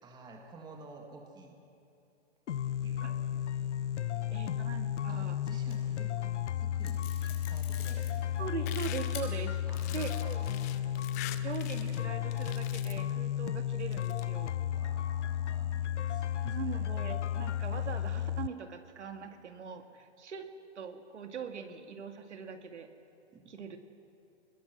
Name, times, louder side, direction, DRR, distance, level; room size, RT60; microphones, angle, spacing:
voice 1, 0.0-1.6 2.5-3.7 4.1-4.6 5.1-8.4 9.7-11.2 14.7-16.8 23.3-23.5, right 3 dB, 10° right, 2 dB, 2.0 m, -53 dB
sound 1, 2.5-18.5, left 10 dB, 80° left, 0.7 m, -33 dB
voice 2, 4.3-5.4 8.4-9.6 9.9-10.4 11.4-14.5 16.4-20.5 20.8-22.9 23.5-23.8, right 6 dB, 80° right, 5 dB, 2.2 m, -41 dB
sound 2, 5.6-6.2 6.8-8.6 9.1-9.3 9.7-10.7, left 9 dB, 50° left, 5.0 m, -48 dB
sound 3, 8.7-12.0 12.3-13.1 13.8-14.2, left 14 dB, 15° left, 0.4 m, -44 dB
22.5 x 21.0 x 6.2 m, 2.7 s
hypercardioid pair, 145°, 35 cm